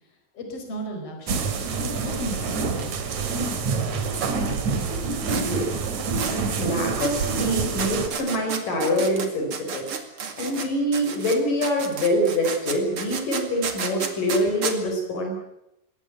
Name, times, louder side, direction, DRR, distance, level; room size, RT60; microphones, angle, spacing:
voice 1, 0.3-1.5 2.0-2.9, right 1 dB, 40° left, 3 dB, 5.7 m, -35 dB
sound 1, 1.3-8.1, right 4 dB, 55° right, 3.4 m, -27 dB
sound 2, 2.8-2.9 3.1-3.2 5.3-5.5 6.2-6.4 7.0-7.1 7.8-10.7 10.9-14.8, right 6 dB, 40° right, 2.8 m, -31 dB
voice 2, 5.3-5.7 6.3-9.9 10.4-15.4, equal, 65° left, 2 dB, 6.0 m, -25 dB
21.5 x 18.0 x 9.3 m, 0.87 s
omnidirectional pair, 4.1 m